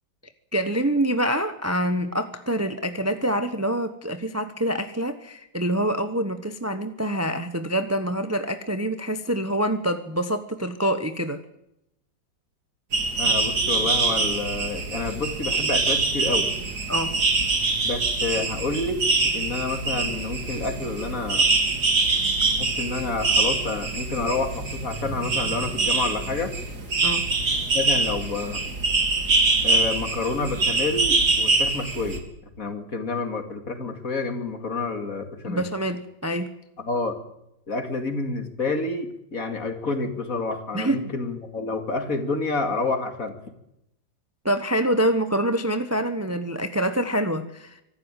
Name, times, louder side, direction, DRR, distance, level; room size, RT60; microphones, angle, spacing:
voice 1, 0.5-11.4 16.9-17.2 27.0-27.3 35.4-36.5 40.7-41.1 44.4-47.8, right 1 dB, 15° right, 9 dB, 0.6 m, -26 dB
sound 1, 12.9-32.2, right 3 dB, 55° right, 3.1 m, -24 dB
voice 2, 13.2-16.5 17.8-19.0 19.3-21.5 22.6-26.5 27.7-28.6 29.6-32.2 32.6-35.6 36.8-37.2 37.7-43.4, left 3 dB, 45° left, 6 dB, 2.6 m, -29 dB
25.0 x 13.0 x 9.0 m, 0.85 s
omnidirectional pair, 2.1 m